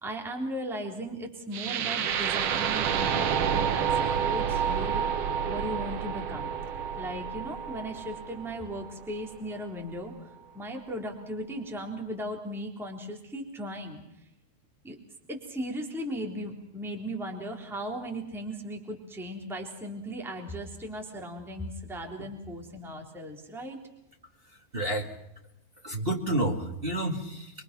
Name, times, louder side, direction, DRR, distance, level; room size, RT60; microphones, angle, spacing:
voice 1, 0.0-5.0 5.5-6.5 7.0-10.1 10.5-14.0 14.8-15.0 15.3-23.8, equal, ahead, 2 dB, 2.9 m, -37 dB
sound 1, 1.5-9.6, right 8 dB, 80° right, 1.3 m, -29 dB
voice 2, 24.7-25.1 25.8-27.5, right 1 dB, 30° right, 1 dB, 1.1 m, -29 dB
26.5 x 23.0 x 6.1 m, 0.87 s
omnidirectional pair, 4.4 m